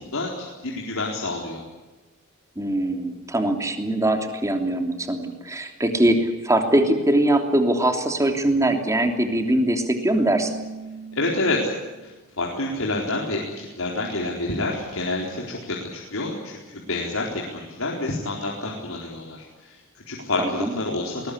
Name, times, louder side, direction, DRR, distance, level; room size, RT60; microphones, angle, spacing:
voice 1, 0.0-1.6 11.1-11.7 12.0-21.3, left 2 dB, 85° left, -2 dB, 4.3 m, -28 dB
voice 2, 2.6-10.6 20.4-20.7, right 1 dB, 15° right, 5 dB, 3.1 m, -22 dB
Keyboard (musical), 10.1-12.1, right 3 dB, 60° right, 6.9 m, -38 dB
21.0 x 20.0 x 9.9 m, 1.2 s
head